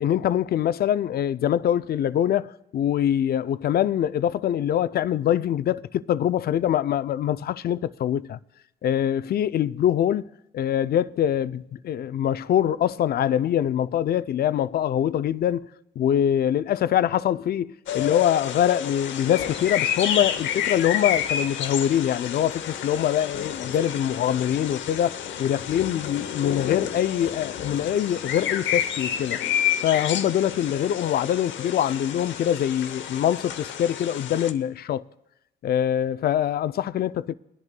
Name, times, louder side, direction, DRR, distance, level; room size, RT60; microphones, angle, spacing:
voice 1, 0.0-8.4 8.8-10.3 10.5-15.7 16.0-29.4 29.8-35.0 35.6-37.3, left 10 dB, 50° left, 0.4 m, -24 dB
sound 1, 17.9-34.5, left 9 dB, 70° left, 0.8 m, -30 dB
22.0 x 10.5 x 2.2 m
cardioid pair, 90°, 20 cm